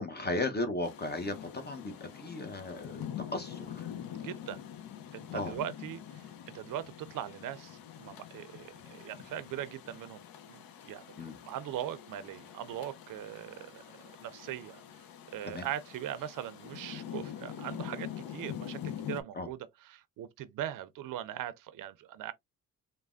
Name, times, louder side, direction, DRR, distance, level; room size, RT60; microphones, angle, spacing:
voice 1, 0.0-3.9 5.3-5.6 11.2-11.4 15.4-15.7 19.3-19.5, left 2 dB, 30° left, 0.6 m, -36 dB
Rain, 0.8-19.2, left 9 dB, 80° left, 0.6 m, -45 dB
voice 2, 4.2-4.6 5.1-14.8 15.3-22.3, right 11 dB, 65° right, 0.5 m, -40 dB
3.2 x 2.1 x 2.3 m
cardioid pair, 75°, 34 cm